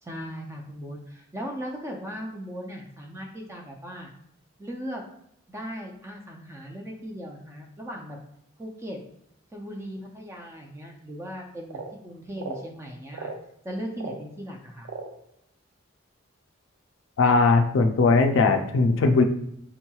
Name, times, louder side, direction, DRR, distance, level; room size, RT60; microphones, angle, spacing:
voice 1, 0.0-4.1 4.6-5.0 5.5-8.2 8.6-9.0 9.5-13.3 13.6-14.9, equal, 15° right, 1 dB, 0.4 m, -38 dB
sound 1, 11.7-11.9 12.3-12.7 13.1-13.4 14.0-14.2 14.8-15.2, right 4 dB, 90° right, 0.5 m, -36 dB
voice 2, 17.2-19.2, left 3 dB, 65° left, 5 dB, 0.4 m, -19 dB
3.6 x 3.0 x 2.3 m, 0.73 s
head